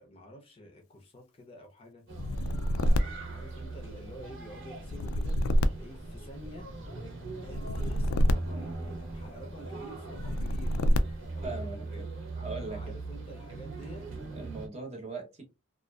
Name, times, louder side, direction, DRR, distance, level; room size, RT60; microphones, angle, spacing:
voice 1, 0.0-2.0 2.7-5.4 5.8-6.7 7.4-10.8 11.0-12.0 12.6-14.0, equal, 30° left, 0.5 m, -49 dB
sound 1, 2.1-4.1 4.8-6.7 7.4-9.4 10.1-11.5, equal, 85° left, 0.3 m, -28 dB
sound 2, 2.1-14.7, right 3 dB, 70° right, 0.8 m, -40 dB
voice 2, 11.4-12.0 12.3-12.8 14.3-15.4, right 3 dB, 30° right, 0.8 m, -39 dB
2.5 x 2.3 x 2.2 m
head